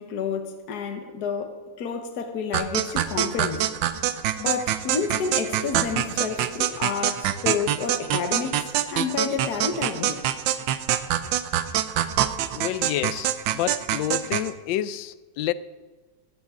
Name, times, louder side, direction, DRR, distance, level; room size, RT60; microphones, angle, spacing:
voice 1, 0.0-3.7 4.4-8.6 8.9-10.2, left 5 dB, 60° left, 1.6 m, -29 dB
sound 1, 2.5-14.5, right 11 dB, 90° right, 1.4 m, -25 dB
voice 2, 12.5-15.5, left 12 dB, 85° left, 1.3 m, -29 dB
15.5 x 13.5 x 3.8 m
omnidirectional pair, 2.0 m